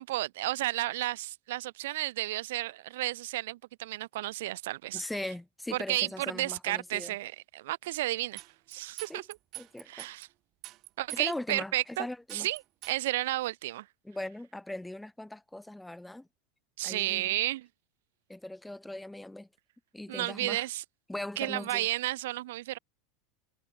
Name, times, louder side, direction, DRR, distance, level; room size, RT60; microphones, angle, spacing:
voice 1, 0.0-5.0 5.7-8.4 8.7-9.3 9.9-10.3 11.0-12.1 12.3-12.6 12.9-13.8 16.8-17.7 20.1-20.8 21.4-22.8, right 17 dB, 75° right, 3.3 m, -32 dB
voice 2, 4.9-7.2 9.1-9.2 9.6-10.1 11.1-12.5 14.0-16.3 16.8-17.3 18.3-19.5 19.9-20.7 21.1-21.9, left 1 dB, 5° left, 2.8 m, -40 dB
sound 1, 8.4-10.2 10.6-11.6 11.9-12.0 12.3-13.1, right 17 dB, 50° right, 7.5 m, -45 dB
supercardioid pair, 105°, 0 cm